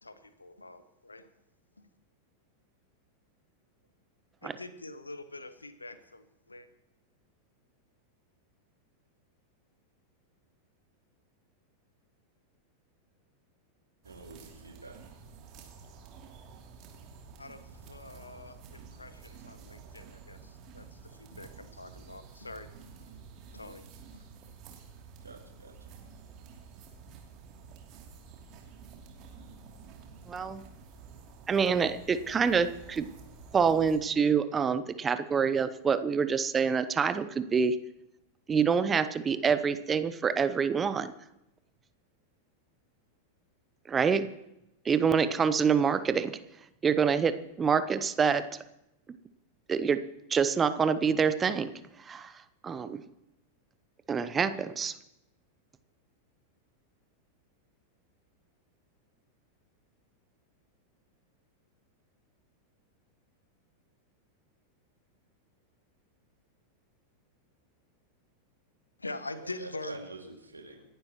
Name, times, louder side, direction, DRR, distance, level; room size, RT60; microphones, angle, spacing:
voice 1, 0.0-1.3 1.8-1.9 4.4-6.7 17.4-22.7 23.0-23.1 23.5-23.9 24.1-24.3 69.0-70.1, left 2 dB, 80° left, 12 dB, 1.1 m, -44 dB
sound 1, 14.0-34.0, right 5 dB, 40° right, 2.9 m, -50 dB
voice 2, 14.0-15.0 25.2-25.9 69.3-70.8, right 2 dB, 80° right, 2 dB, 2.3 m, -47 dB
voice 3, 30.3-30.6 31.5-33.1 33.5-37.8 38.5-41.1 43.9-44.3 44.8-46.4 46.8-48.6 49.7-50.0 50.3-51.7 52.0-53.0 54.1-54.9, right 6 dB, 20° right, 12 dB, 0.8 m, -26 dB
27.5 x 11.5 x 3.1 m, 0.86 s
figure-of-eight pair, 90°, 0 cm